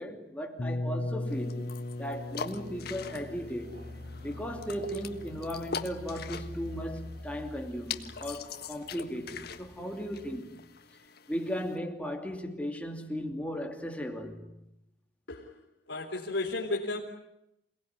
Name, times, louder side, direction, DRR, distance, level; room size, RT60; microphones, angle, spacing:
voice 1, 0.0-1.7 2.0-3.8 4.2-10.6 11.3-14.5, equal, 10° left, 2.8 m, -36 dB
sound 1, 0.6-6.4, left 1 dB, 40° left, 1.1 m, -38 dB
sound 2, 1.3-11.8, left 6 dB, 60° left, 1.6 m, -43 dB
sound 3, 2.1-10.4, left 1 dB, 55° right, 3.5 m, -47 dB
voice 2, 15.9-17.0, left 2 dB, 75° left, 3.9 m, -33 dB
28.5 x 19.0 x 9.9 m
head